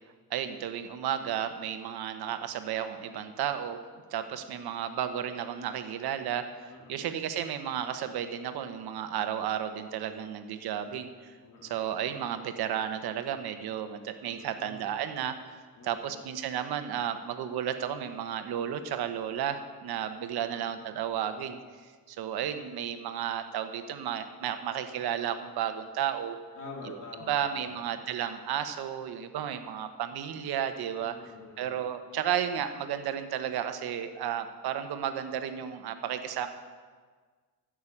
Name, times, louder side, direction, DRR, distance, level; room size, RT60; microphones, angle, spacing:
voice 1, 0.3-3.8 4.1-11.3 11.6-15.6 15.8-21.6 22.1-26.4 26.8-27.0 27.3-31.1 31.6-36.5, right 9 dB, 85° right, 9 dB, 1.1 m, -33 dB
voice 2, 6.7-7.1 11.4-11.9 14.2-14.9 15.8-16.2 20.2-20.8 26.6-27.9 31.0-31.8, left 3 dB, 55° left, -2 dB, 2.4 m, -47 dB
15.0 x 6.3 x 7.3 m, 1.5 s
cardioid pair, 100°, 37 cm